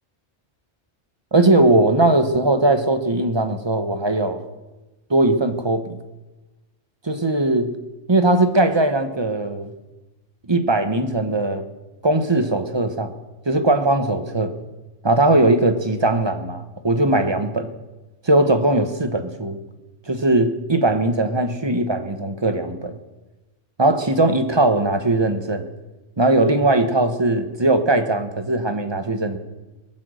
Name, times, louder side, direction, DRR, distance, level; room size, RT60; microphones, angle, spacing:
voice 1, 1.3-4.4 5.1-6.0 7.0-7.7 8.1-9.7 10.5-11.7 12.0-13.1 13.5-14.5 15.0-17.7 18.2-19.6 20.1-22.9 23.8-25.7 26.2-29.4, right 2 dB, 25° right, 7 dB, 1.0 m, -19 dB
20.5 x 7.6 x 6.3 m, 1.1 s
omnidirectional pair, 1.2 m